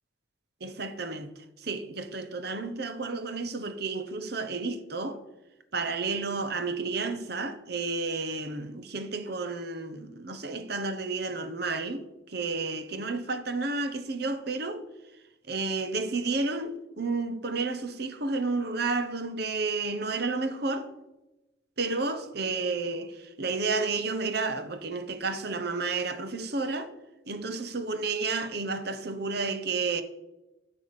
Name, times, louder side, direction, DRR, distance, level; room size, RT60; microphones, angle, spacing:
voice 1, 0.6-5.2 5.7-14.9 15.5-20.9 21.8-26.9 27.3-30.0, right 3 dB, 60° right, 1.1 m, -31 dB
10.5 x 7.2 x 7.1 m
head